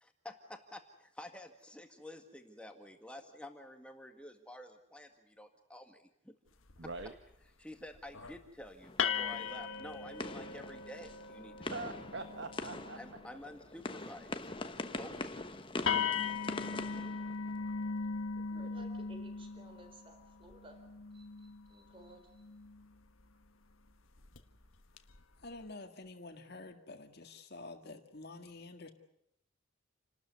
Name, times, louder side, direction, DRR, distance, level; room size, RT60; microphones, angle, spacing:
voice 1, 0.0-6.4 7.6-11.9 13.0-14.4 14.9-15.4, left 1 dB, 5° left, 5 dB, 1.8 m, -50 dB
sound 1, 6.7-7.1 7.9-8.4 9.0-13.3 15.0-15.1 15.4-15.5 15.9-22.9 24.2-24.4 25.0-25.5, left 6 dB, 70° left, 1.3 m, -39 dB
voice 2, 6.8-7.1 9.4-9.6 11.7-13.0 14.8-15.1 16.7-16.8 17.7-17.8, right 3 dB, 55° right, 8 dB, 1.2 m, -44 dB
sound 2, 8.8-17.9, left 2 dB, 25° left, 1.1 m, -44 dB
voice 3, 18.5-20.8 21.1-22.4, right 1 dB, 25° right, 5 dB, 4.1 m, -56 dB
voice 4, 25.4-28.9, left 2 dB, 50° left, 6 dB, 1.9 m, -48 dB
29.0 x 13.0 x 9.5 m, 0.76 s
head